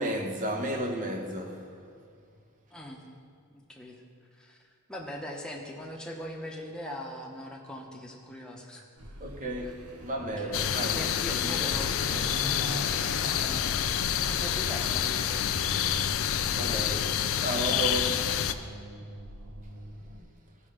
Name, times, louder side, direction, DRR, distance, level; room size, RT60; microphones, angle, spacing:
voice 1, 0.0-1.8 9.2-11.0 11.3-11.7 15.7-15.9 16.5-17.1 17.4-18.1, right 1 dB, 35° right, 1.1 m, -33 dB
voice 2, 2.7-3.0 3.5-4.0 4.3-4.6 4.9-8.9 10.2-13.9 14.2-15.5 16.7-17.0 17.5-18.7, equal, 5° left, 1.1 m, -41 dB
Car passing by / Accelerating revving vroom, 9.0-20.2, right 1 dB, 75° right, 0.9 m, -41 dB
sound 1, 10.5-18.5, left 10 dB, 65° left, 0.4 m, -28 dB
15.0 x 5.5 x 5.0 m
head